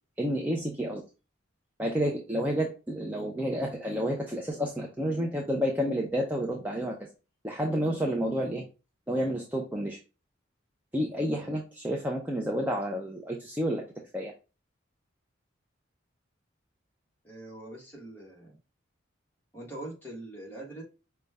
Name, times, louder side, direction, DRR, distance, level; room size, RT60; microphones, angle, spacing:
voice 1, 0.2-1.0 1.8-7.0 7.4-8.7 9.1-10.0 10.9-13.8 14.1-14.3, equal, 10° right, 0 dB, 0.4 m, -30 dB
voice 2, 17.2-18.6 19.5-20.8, right 1 dB, 10° left, -3 dB, 1.3 m, -43 dB
5.1 x 2.2 x 3.3 m, 0.31 s
head